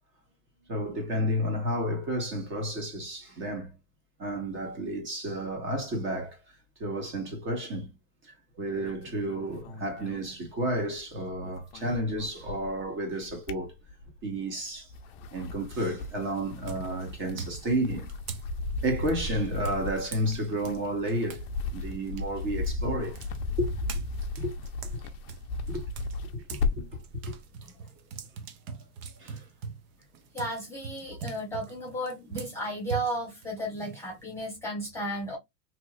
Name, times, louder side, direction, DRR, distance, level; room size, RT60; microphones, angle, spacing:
voice 1, 0.7-3.8 4.2-6.4 6.8-7.9 8.6-13.8 14.2-14.9 15.3-18.1 18.8-21.4 21.7-23.2 23.6-23.7 24.4-24.5 25.7-25.8 26.3-27.4 29.2-29.4, right 1 dB, 30° right, 1.5 m, -31 dB
sound 1, 8.8-11.0 11.3-12.9 13.2-14.3 14.8-27.0, left 3 dB, 45° left, 0.6 m, -36 dB
sound 2, 15.7-16.1 16.6-21.5 21.8-26.7 27.0-34.4, right 5 dB, 45° right, 0.7 m, -42 dB
voice 2, 30.3-35.4, right 1 dB, 5° left, 1.1 m, -34 dB
3.0 x 2.9 x 2.4 m
supercardioid pair, 150°, 42 cm